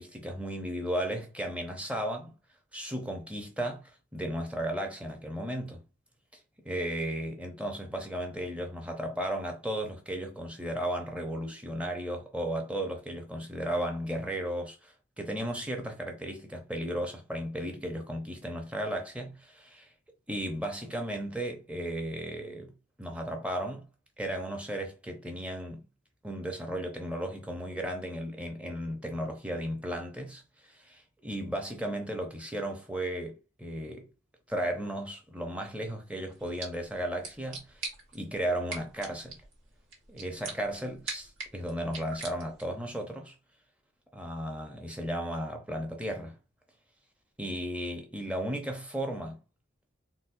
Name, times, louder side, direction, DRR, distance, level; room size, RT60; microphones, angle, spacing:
voice 1, 0.0-2.3 2.7-5.8 6.6-19.9 20.3-22.7 23.0-23.9 24.2-25.8 26.2-30.4 30.7-34.1 34.5-39.4 40.1-43.3 44.1-46.4 47.4-49.4, right 1 dB, 5° right, 0.5 m, -35 dB
sound 1, 36.3-42.8, right 3 dB, 75° right, 1.1 m, -44 dB
4.0 x 2.1 x 2.5 m
head